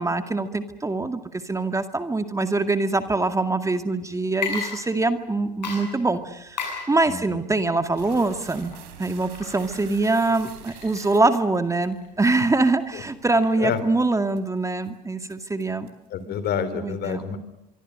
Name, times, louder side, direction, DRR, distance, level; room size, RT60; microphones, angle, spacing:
voice 1, 0.0-8.7 9.0-15.9 16.8-17.2, right 3 dB, 15° right, 9 dB, 2.1 m, -24 dB
Water / Liquid, 4.3-5.3 5.6-13.9, left 5 dB, 90° left, 7.6 m, -37 dB
voice 2, 7.1-7.4 12.9-13.0 13.6-13.8 16.1-17.4, left 8 dB, 50° left, 13 dB, 3.9 m, -28 dB
sound 1, 8.0-11.9 12.3-12.4 13.0-13.1 13.5-13.8 14.3-14.6 14.8-14.9 15.3-16.1, right 12 dB, 70° right, 3.6 m, -45 dB
25.5 x 24.5 x 6.6 m, 0.91 s
hypercardioid pair, 70°, 21 cm